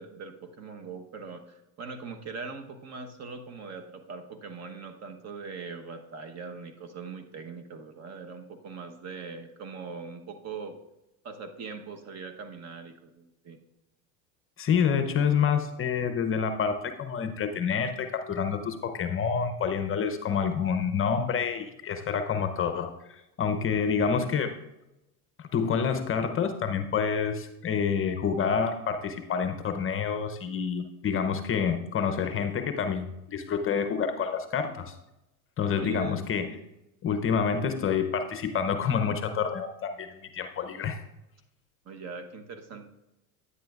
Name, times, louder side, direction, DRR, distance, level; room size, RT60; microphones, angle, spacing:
voice 1, 0.0-10.8 11.2-13.6 35.7-36.2 41.8-42.9, right 4 dB, 35° right, 6 dB, 1.1 m, -41 dB
voice 2, 14.6-24.5 25.4-35.0 35.6-36.5 37.0-41.0, left 6 dB, 30° left, 8 dB, 0.7 m, -28 dB
10.0 x 9.8 x 2.4 m, 0.93 s
supercardioid pair, 105°, 43 cm